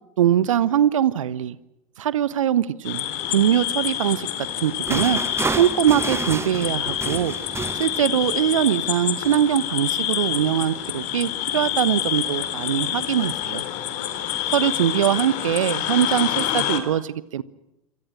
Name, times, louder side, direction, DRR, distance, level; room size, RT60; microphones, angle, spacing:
voice 1, 0.2-1.6 2.0-5.2 5.5-7.3 7.7-13.6 14.5-17.4, right 10 dB, 65° right, 18 dB, 1.3 m, -22 dB
sound 1, 2.8-16.8, left 12 dB, 45° left, 3.7 m, -27 dB
sound 2, 4.4-8.5 9.2-9.5, right 4 dB, 15° right, 1.7 m, -30 dB
28.5 x 26.0 x 6.2 m, 0.88 s
figure-of-eight pair, 85°, 18 cm